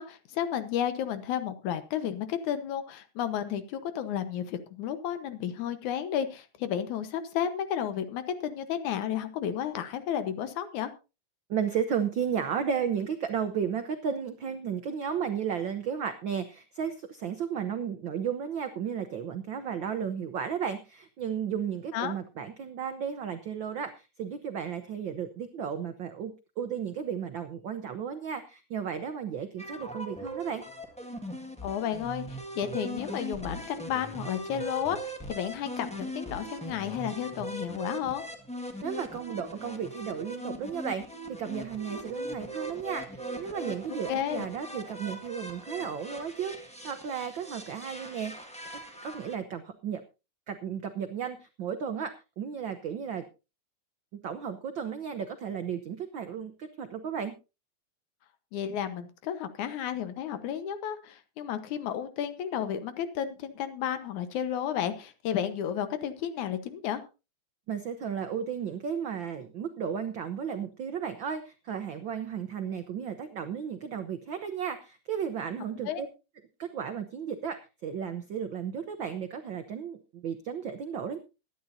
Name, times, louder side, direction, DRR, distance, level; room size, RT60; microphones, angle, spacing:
voice 1, 0.0-10.9 21.9-22.1 31.6-38.2 44.1-44.4 58.5-67.0 75.9-76.0, left 9 dB, 80° left, 11 dB, 2.6 m, -32 dB
voice 2, 11.5-30.6 38.8-48.3 48.7-50.0 50.5-53.2 54.2-57.3 67.7-76.1 76.6-81.2, right 7 dB, 85° right, 8 dB, 1.0 m, -34 dB
sound 1, 29.6-49.4, right 1 dB, 5° left, 0.8 m, -40 dB
21.5 x 10.0 x 2.7 m, 0.29 s
omnidirectional pair, 3.4 m